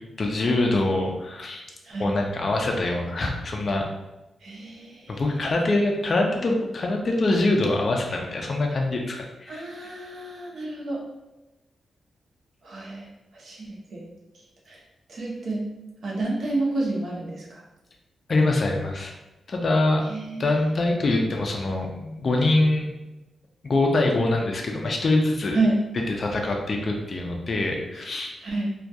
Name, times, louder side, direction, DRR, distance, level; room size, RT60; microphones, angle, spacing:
voice 1, 0.2-1.6 2.0-3.8 5.1-9.6 18.3-19.1 19.5-20.1 20.4-22.9 23.6-25.6 26.1-28.3, left 2 dB, 35° left, 1 dB, 0.3 m, -24 dB
voice 2, 1.8-2.2 4.4-5.4 9.5-11.1 12.6-14.1 14.3-14.8 15.1-15.7 16.0-17.6 20.0-20.5 25.5-25.8 27.9-28.1 28.4-28.7, right 2 dB, 55° right, -4 dB, 0.6 m, -30 dB
2.2 x 2.2 x 2.6 m, 1.0 s
wide cardioid pair, 160°, 0 cm